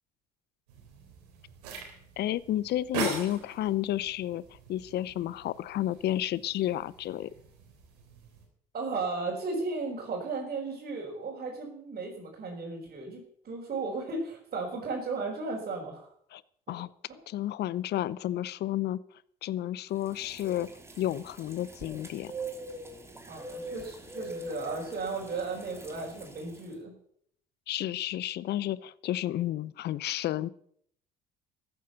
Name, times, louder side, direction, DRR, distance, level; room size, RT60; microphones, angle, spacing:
sound 1, 0.7-8.5, right 4 dB, 85° right, 3.7 m, -41 dB
voice 1, 2.2-7.3 16.3-16.4 16.7-16.9 17.3-19.0 19.4-20.7 21.0-22.3 27.7-30.5, left 13 dB, 55° left, 20 dB, 0.7 m, -31 dB
voice 2, 8.7-16.1 16.7-16.8 23.3-26.9, right 3 dB, 45° right, -4 dB, 4.9 m, -35 dB
sound 2, 20.0-26.6, right 1 dB, 15° right, 3.0 m, -43 dB
14.0 x 9.2 x 6.9 m, 0.67 s
hypercardioid pair, 65°, 20 cm